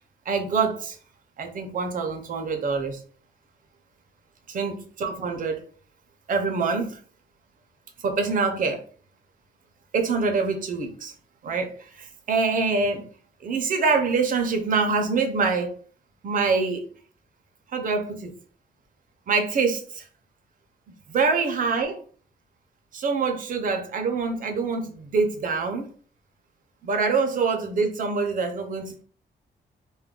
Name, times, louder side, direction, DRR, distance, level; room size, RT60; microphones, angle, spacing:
voice 1, 0.3-1.0 1.4-3.0 4.5-5.6 6.3-7.0 8.0-8.8 9.9-11.1 11.4-13.1 13.4-15.7 16.2-16.8 17.7-18.3 19.3-20.0 21.1-22.0 22.9-25.9 26.8-29.0, right 4 dB, 50° right, 0.6 m, -25 dB
2.3 x 2.2 x 3.6 m
wide cardioid pair, 170°, 17 cm